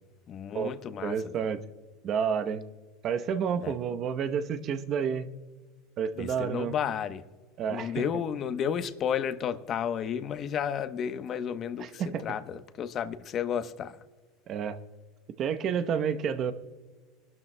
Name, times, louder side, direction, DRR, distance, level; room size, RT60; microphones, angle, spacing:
voice 1, 0.3-1.2 3.6-3.7 6.2-7.2 7.7-14.0, left 8 dB, 40° left, 0.9 m, -32 dB
voice 2, 1.0-1.6 2.0-2.6 3.0-5.3 6.0-6.7 7.6-8.0 11.8-12.3 14.5-14.8 15.4-16.5, right 7 dB, 45° right, 0.8 m, -30 dB
24.0 x 12.0 x 2.2 m
supercardioid pair, 115°, 0 cm